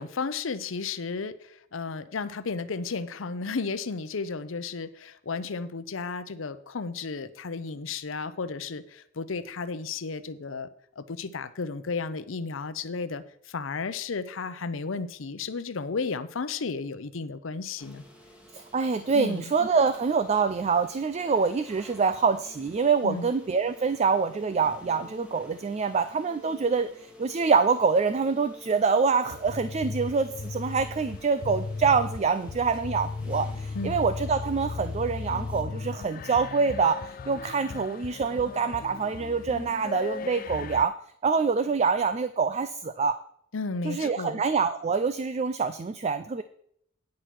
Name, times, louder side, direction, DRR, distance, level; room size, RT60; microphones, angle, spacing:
voice 1, 0.0-10.7 11.0-18.0 19.1-19.4 23.0-23.3 33.7-34.0 43.5-44.4, left 4 dB, 90° left, 13 dB, 0.7 m, -33 dB
sound 1, 17.8-35.6, left 1 dB, 5° right, 1.4 m, -51 dB
voice 2, 18.5-40.9 41.2-43.2 43.8-46.4, right 5 dB, 35° right, 12 dB, 0.3 m, -25 dB
sound 2, 29.3-40.9, left 4 dB, 45° left, 0.3 m, -36 dB
9.5 x 6.4 x 5.9 m, 0.69 s
head